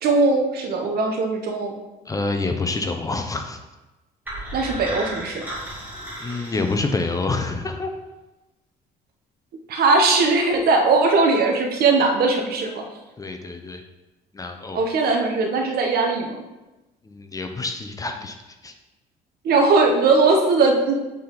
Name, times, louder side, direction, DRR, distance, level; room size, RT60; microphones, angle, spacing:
voice 1, 0.0-1.7 4.5-5.4 9.7-12.9 14.7-16.3 19.4-20.9, right 3 dB, 65° right, 3 dB, 1.2 m, -19 dB
voice 2, 2.1-3.6 6.2-7.9 13.2-13.8 14.3-14.8 17.0-18.4 18.6-18.7, left 3 dB, 20° left, 5 dB, 0.7 m, -27 dB
sound 1, 4.3-7.3, right 1 dB, 10° right, 2.4 m, -34 dB
7.2 x 4.3 x 3.9 m, 1.1 s
cardioid pair, 110°, 17 cm